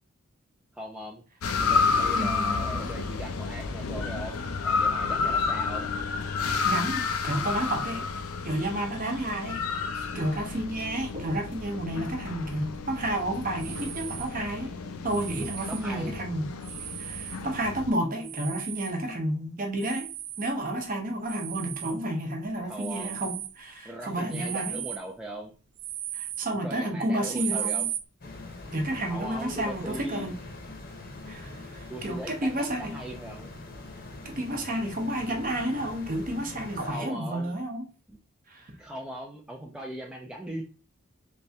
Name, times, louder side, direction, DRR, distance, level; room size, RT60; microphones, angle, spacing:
voice 1, 0.7-1.2 1.6-5.9 15.7-16.2 19.0-19.1 22.6-23.2 23.8-25.5 26.5-27.9 29.1-30.3 31.9-33.5 36.8-37.6 38.1-38.2 38.8-40.6, right 1 dB, 5° right, 0.4 m, -39 dB
sound 1, 1.4-17.9, left 4 dB, 85° left, 0.5 m, -30 dB
voice 2, 2.2-2.7 6.6-8.1 8.4-9.6 9.9-14.7 15.0-16.5 17.0-20.1 20.4-24.8 26.1-27.9 28.7-30.3 31.3-33.0 34.2-37.9 38.5-38.8, right 1 dB, 40° right, 0.7 m, -31 dB
sound 2, 13.6-14.3 15.1-15.9 16.6-17.4 18.2-19.0 19.8-20.5 21.2-22.0 22.8-23.6 24.3-25.1 25.8-26.5 27.3-28.0, right 12 dB, 85° right, 0.4 m, -36 dB
sound 3, 28.2-36.9, left 2 dB, 45° left, 0.8 m, -43 dB
3.3 x 3.3 x 2.7 m
head